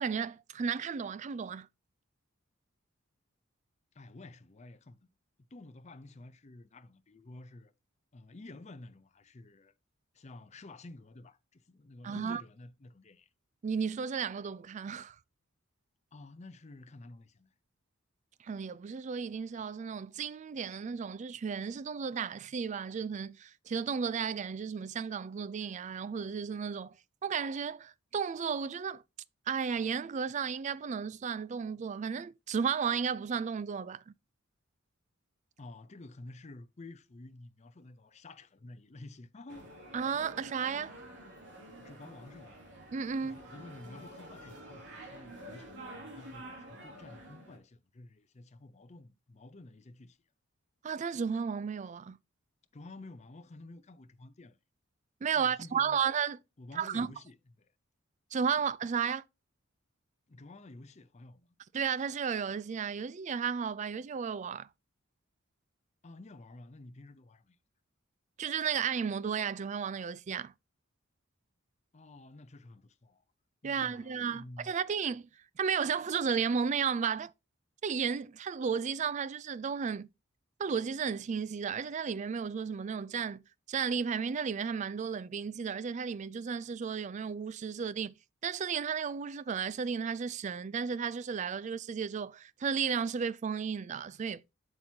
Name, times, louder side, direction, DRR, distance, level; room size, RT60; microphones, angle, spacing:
voice 1, 0.0-1.7 12.0-12.4 13.6-15.2 18.4-27.0 27.2-29.0 29.5-34.1 39.9-40.9 42.9-43.4 50.8-52.2 55.2-56.4 56.8-57.1 58.3-59.2 61.7-64.7 68.4-70.5 73.6-75.3 75.6-77.3 77.8-80.1 80.6-83.4 83.7-88.1 88.4-94.4, right 6 dB, 35° right, 0.3 m, -33 dB
voice 2, 3.9-5.1 5.5-7.7 8.1-9.7 10.1-13.3 16.1-17.5 35.6-39.7 41.8-42.6 43.2-50.2 52.7-54.6 55.3-56.0 56.6-57.7 60.3-61.6 66.0-67.6 71.9-73.2 73.6-74.7, left 2 dB, 35° left, 0.6 m, -51 dB
sound 1, 39.5-47.6, right 1 dB, 60° right, 2.7 m, -49 dB
7.7 x 6.1 x 2.7 m
head